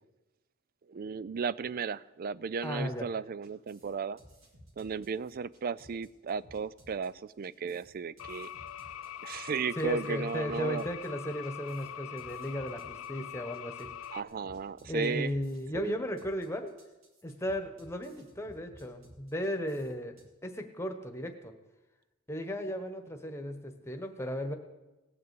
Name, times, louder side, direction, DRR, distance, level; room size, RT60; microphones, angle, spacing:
voice 1, 0.9-4.2 4.8-8.5 9.2-10.8 14.1-15.3 15.7-16.0, right 5 dB, 45° right, 20 dB, 0.4 m, -35 dB
voice 2, 2.6-3.1 9.8-13.9 14.9-16.7 17.2-20.2 20.4-21.5 22.3-24.5, equal, 15° left, 6 dB, 1.3 m, -35 dB
sound 1, 3.4-20.2, equal, 75° right, 2.9 m, -58 dB
sound 2, 8.2-14.2, left 10 dB, 90° left, 0.4 m, -43 dB
18.0 x 7.0 x 8.4 m, 1.1 s
head